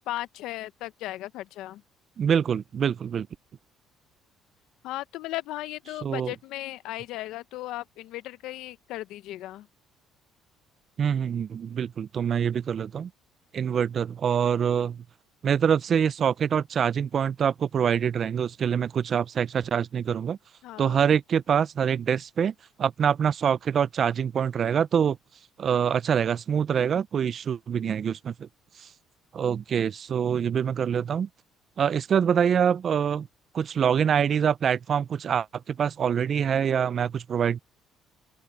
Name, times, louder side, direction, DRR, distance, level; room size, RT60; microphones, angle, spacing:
voice 1, 0.1-1.8 4.8-9.7 20.6-21.0, left 16 dB, 80° left, 1.0 m, -36 dB
voice 2, 2.2-3.3 6.0-6.3 11.0-13.1 13.5-15.0 15.4-20.4 20.8-22.5 22.8-25.2 25.6-28.5 28.8-28.9 29.3-31.3 31.8-33.3 33.5-37.6, right 8 dB, 50° right, 0.5 m, -25 dB
open air
cardioid pair, 90°, 0 cm